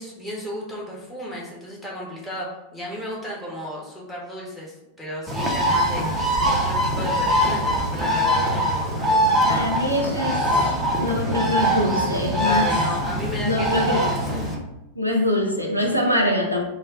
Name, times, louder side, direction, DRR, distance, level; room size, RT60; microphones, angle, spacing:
voice 1, 0.0-6.1 6.5-9.8 12.4-14.5, equal, 5° left, -5 dB, 0.9 m, -34 dB
Bird, 5.3-14.5, equal, 10° right, 0.6 m, -22 dB
voice 2, 9.5-12.8 13.4-14.2 15.0-16.6, left 1 dB, 90° left, 0 dB, 0.4 m, -24 dB
2.3 x 2.1 x 3.6 m, 0.94 s
figure-of-eight pair, 90°, 0 cm